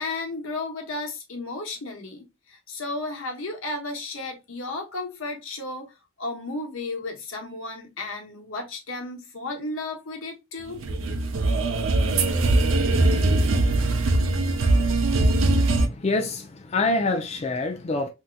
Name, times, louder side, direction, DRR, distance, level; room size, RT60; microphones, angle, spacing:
voice 1, 0.0-5.9 6.2-10.8, left 2 dB, 85° left, 1.0 m, -33 dB
sound 1, 10.7-15.9, right 2 dB, 80° right, 0.6 m, -21 dB
voice 2, 15.7-18.1, left 2 dB, 30° left, 0.4 m, -26 dB
3.6 x 2.7 x 2.2 m
head